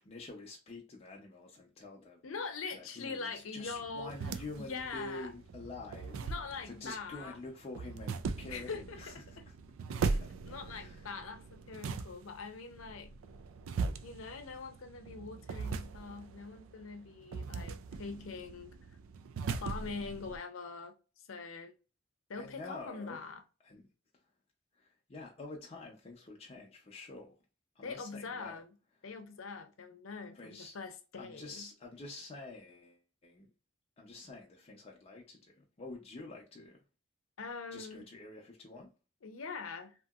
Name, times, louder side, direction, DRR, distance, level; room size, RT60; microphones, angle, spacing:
voice 1, 0.0-2.2 2.7-9.5 9.9-11.1 22.4-23.2 23.6-23.9 24.8-27.3 27.8-28.6 30.3-30.7 31.2-33.5 34.0-36.8 37.7-38.9, left 3 dB, 30° left, 0.5 m, -48 dB
voice 2, 2.2-4.1 4.6-5.3 6.1-7.4 8.5-9.4 10.1-10.2 10.5-13.1 14.0-18.7 19.6-21.7 22.3-23.4 27.8-28.7 29.0-31.7 37.4-38.0 39.2-39.9, left 4 dB, 90° left, 0.6 m, -43 dB
sound 1, 3.7-20.4, right 4 dB, 80° right, 0.4 m, -40 dB
2.8 x 2.7 x 2.3 m
head